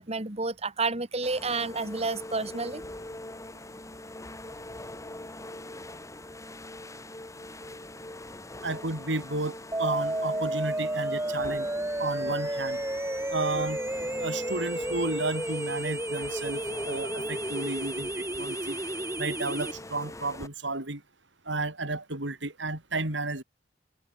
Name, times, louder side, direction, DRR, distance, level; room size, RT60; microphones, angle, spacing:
voice 1, 0.0-2.8, right 3 dB, 35° right, 3.3 m, -30 dB
sound 1, 1.2-20.5, left 1 dB, 15° left, 2.5 m, -42 dB
voice 2, 8.6-11.7 12.0-12.8 13.3-13.8 14.2-18.8 19.2-21.0 21.5-23.4, right 2 dB, 75° right, 4.1 m, -32 dB
sound 2, 9.7-19.7, right 1 dB, 15° right, 4.6 m, -32 dB
head